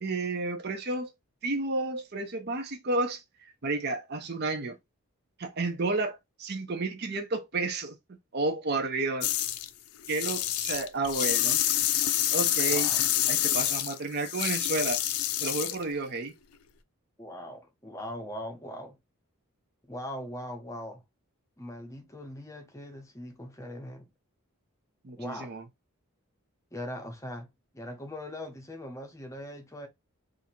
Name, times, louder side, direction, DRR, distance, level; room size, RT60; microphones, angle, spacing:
voice 1, 0.0-1.1 1.4-4.7 5.4-8.0 8.3-9.3 10.1-11.6 12.3-12.9 13.3-15.0 15.4-16.3 25.0-25.6, right 3 dB, 45° right, 0.6 m, -31 dB
sound 1, 9.2-9.7 10.0-15.8, left 12 dB, 80° left, 0.4 m, -27 dB
voice 2, 17.2-19.0 19.9-21.0 21.6-24.1 25.2-25.6 26.7-29.9, left 1 dB, 15° left, 0.7 m, -40 dB
2.7 x 2.5 x 4.2 m
head